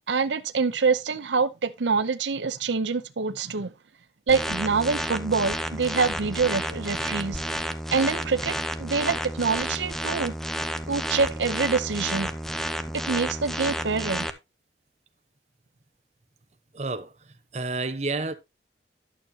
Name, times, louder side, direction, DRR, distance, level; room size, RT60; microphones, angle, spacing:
voice 1, 0.1-3.7 4.3-7.6 7.9-10.3 10.9-12.3 13.0-14.3, right 4 dB, 90° right, 0.7 m, -26 dB
sound 1, 4.3-14.3, equal, ahead, 0.7 m, -31 dB
voice 2, 16.7-17.1 17.5-18.3, right 3 dB, 40° right, 0.9 m, -29 dB
11.5 x 7.0 x 2.8 m
head